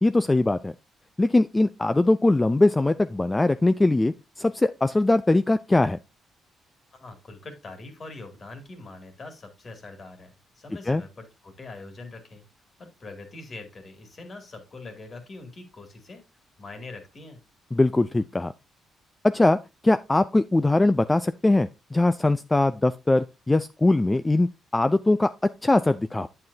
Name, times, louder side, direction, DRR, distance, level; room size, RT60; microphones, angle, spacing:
voice 1, 0.0-0.7 1.2-6.0 10.9-11.0 17.7-18.5 19.2-19.6 19.8-25.3 25.6-26.3, left 2 dB, 15° left, 0.4 m, -21 dB
voice 2, 7.0-12.4 12.8-16.2 16.6-17.4, left 3 dB, 40° left, 2.3 m, -43 dB
8.6 x 7.7 x 2.7 m
cardioid pair, 90°, 0 cm